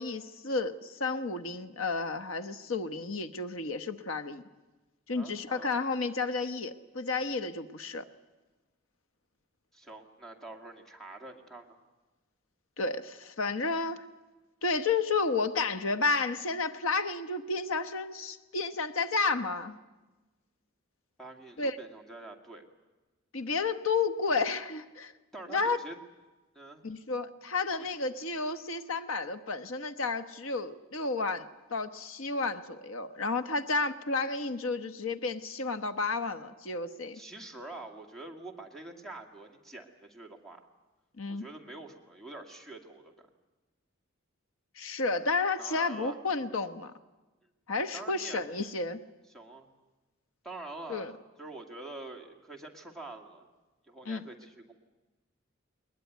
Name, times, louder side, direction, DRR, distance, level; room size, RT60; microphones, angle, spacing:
voice 1, 0.0-4.4 5.1-8.1 12.8-14.0 14.6-19.8 21.6-21.8 23.3-25.1 25.5-25.8 26.8-37.2 41.2-41.4 44.8-46.9 47.7-49.0 50.9-51.1 54.0-54.3, left 3 dB, 90° left, 10 dB, 1.1 m, -31 dB
voice 2, 5.1-5.8 9.7-11.8 21.2-22.6 25.3-26.0 26.5-26.8 37.1-40.7 41.3-43.3 45.6-46.2 47.9-48.4 49.3-49.7 50.4-53.5 53.9-54.7, right 2 dB, ahead, 2 dB, 2.1 m, -46 dB
21.0 x 20.5 x 9.4 m, 1.2 s
head